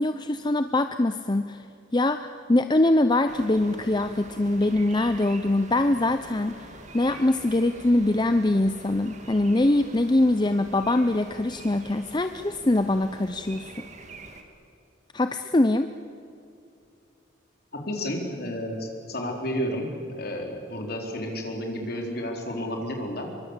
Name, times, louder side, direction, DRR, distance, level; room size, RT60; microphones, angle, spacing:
voice 1, 0.0-1.6 1.9-6.7 6.9-13.7 15.1-15.9, left 2 dB, 20° left, 9 dB, 0.6 m, -23 dB
sound 1, 3.3-14.4, right 2 dB, 40° right, 2.2 m, -45 dB
voice 2, 17.7-23.4, equal, 50° left, 2 dB, 4.2 m, -31 dB
25.0 x 23.0 x 8.2 m, 2.6 s
head